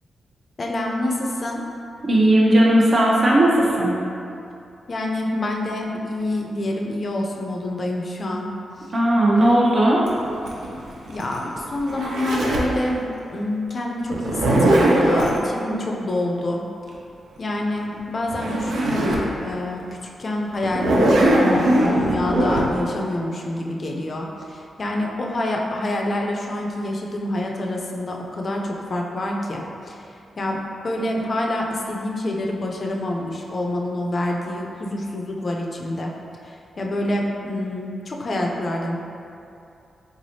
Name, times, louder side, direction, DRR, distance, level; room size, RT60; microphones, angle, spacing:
voice 1, 0.6-1.6 4.9-8.6 9.4-9.6 11.1-13.0 13.3-16.6 17.4-30.1 30.4-30.6 30.8-36.1 36.4-39.0, left 1 dB, 50° left, 0 dB, 0.4 m, -27 dB
voice 2, 2.1-3.9 8.9-10.0, right 1 dB, 50° right, -4 dB, 0.8 m, -16 dB
Zipper (clothing), 10.1-12.8 14.1-15.4 18.0-18.1 18.3-19.3 19.8-19.9 20.6-22.6, right 1 dB, 80° right, 0.5 m, -20 dB
3.6 x 3.2 x 2.7 m, 2.6 s
cardioid pair, 60°, 0 cm